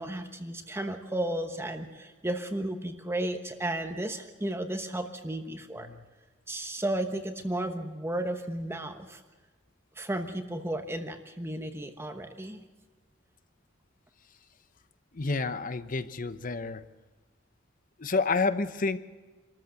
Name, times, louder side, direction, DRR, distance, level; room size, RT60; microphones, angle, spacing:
voice 1, 0.0-5.9 6.5-9.2 10.0-12.6, right 1 dB, 15° right, 6 dB, 1.0 m, -33 dB
voice 2, 15.1-16.8 18.0-19.0, left 3 dB, 45° left, 13 dB, 0.9 m, -29 dB
25.5 x 13.5 x 7.8 m, 1.3 s
head